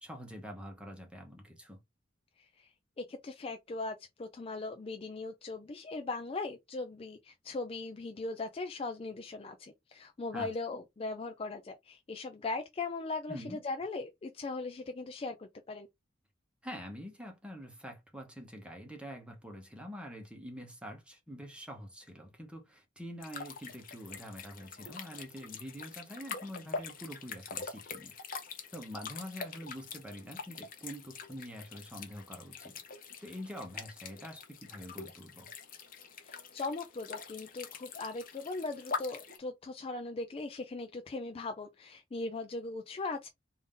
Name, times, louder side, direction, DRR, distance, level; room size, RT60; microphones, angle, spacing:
voice 1, 0.0-1.8 10.3-10.5 13.3-13.6 16.6-28.1 28.7-32.7 33.2-35.5, equal, 5° right, 0.9 m, -45 dB
voice 2, 3.0-15.9 36.2-43.3, left 3 dB, 30° left, 0.4 m, -39 dB
sound 1, 23.2-39.4, left 5 dB, 45° left, 0.8 m, -44 dB
3.5 x 2.6 x 3.7 m
head